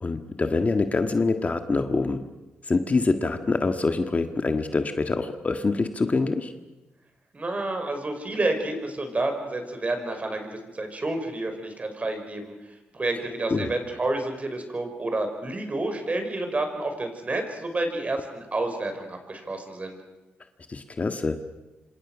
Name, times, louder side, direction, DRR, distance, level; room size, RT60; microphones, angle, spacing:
voice 1, 0.0-2.2 2.6-6.5 13.5-13.7 20.7-21.4, left 3 dB, 35° left, 7 dB, 1.8 m, -25 dB
voice 2, 7.3-12.5 12.9-20.0, right 2 dB, 35° right, 5 dB, 5.6 m, -29 dB
27.0 x 26.5 x 6.3 m, 1.1 s
cardioid pair, 80°, 4 cm